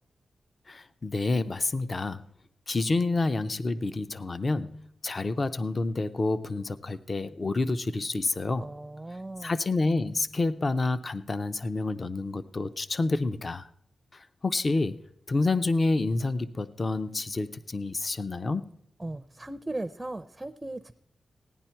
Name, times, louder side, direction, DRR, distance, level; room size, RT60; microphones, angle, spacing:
voice 1, 0.7-2.2 2.7-8.6 9.4-13.7 14.1-15.0 15.3-18.7, left 3 dB, 35° left, 13 dB, 0.5 m, -28 dB
voice 2, 8.6-9.5 19.0-20.9, right 2 dB, 15° right, 9 dB, 0.5 m, -37 dB
16.5 x 10.0 x 4.4 m, 0.71 s
wide cardioid pair, 110°, 0 cm